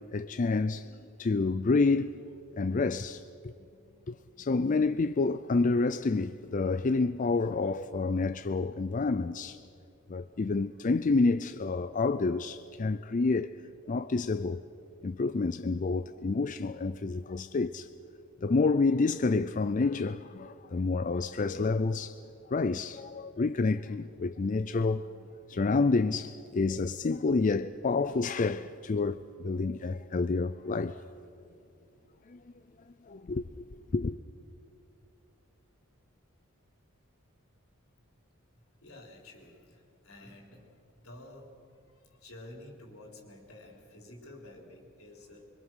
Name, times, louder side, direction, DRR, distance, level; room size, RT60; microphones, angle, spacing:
voice 1, 0.1-0.9 1.2-2.2 2.6-3.5 4.1-9.6 10.1-13.5 13.9-14.6 15.0-17.9 18.4-22.2 22.5-25.1 25.5-31.0 32.3-32.4 33.1-33.4 33.9-34.1, left 3 dB, 40° left, 0.5 m, -28 dB
voice 2, 38.8-41.5 41.9-45.5, left 1 dB, 85° left, 3.9 m, -51 dB
25.5 x 23.0 x 6.3 m
head